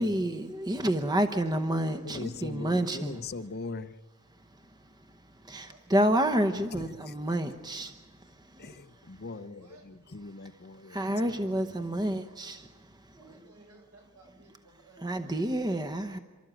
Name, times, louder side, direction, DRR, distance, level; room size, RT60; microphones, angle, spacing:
voice 1, 0.0-3.2 4.3-8.8 10.8-13.4 15.0-16.2, right 1 dB, 20° right, 0.9 m, -30 dB
voice 2, 0.8-1.3 5.6-5.9 9.3-10.0 13.0-15.4, right 2 dB, 80° right, 7.0 m, -57 dB
voice 3, 2.0-4.0 6.7-7.1 8.6-12.1, left 3 dB, 45° left, 0.8 m, -41 dB
28.5 x 13.5 x 8.9 m
head